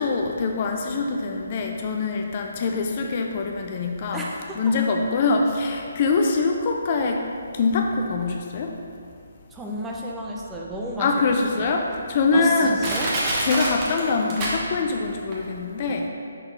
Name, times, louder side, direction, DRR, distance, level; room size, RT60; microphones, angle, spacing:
voice 1, 0.0-4.3 4.6-7.2 7.5-8.7 11.0-12.8 13.4-16.1, left 4 dB, 35° left, 2 dB, 0.4 m, -24 dB
voice 2, 4.1-4.6 9.5-11.2 11.5-11.7 12.3-13.1, equal, 10° right, -3 dB, 0.6 m, -32 dB
Crushing, 10.7-10.8 11.5-11.6 12.2-12.3 12.8-15.0 15.3-15.4, right 1 dB, 25° right, 1.1 m, -26 dB
6.4 x 3.8 x 4.4 m, 2.4 s
figure-of-eight pair, 140°, 0 cm